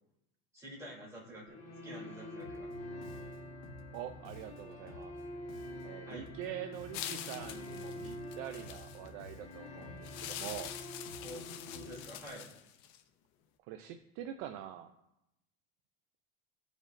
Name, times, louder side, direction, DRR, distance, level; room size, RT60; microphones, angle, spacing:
voice 1, 0.5-2.7 6.0-6.3 11.2-12.5, equal, 10° right, -7 dB, 2.8 m, -48 dB
sound 1, 1.5-12.0, left 1 dB, 25° left, 1.5 m, -47 dB
Bass guitar, 2.4-12.3, left 4 dB, 75° left, 1.1 m, -54 dB
voice 2, 3.9-5.2 5.8-10.7 13.6-14.9, right 11 dB, 55° right, 9 dB, 0.5 m, -44 dB
sound 2, 6.9-9.1 10.0-13.0, left 11 dB, 60° left, 0.7 m, -45 dB
13.5 x 5.2 x 2.5 m, 0.84 s
cardioid pair, 165°, 30 cm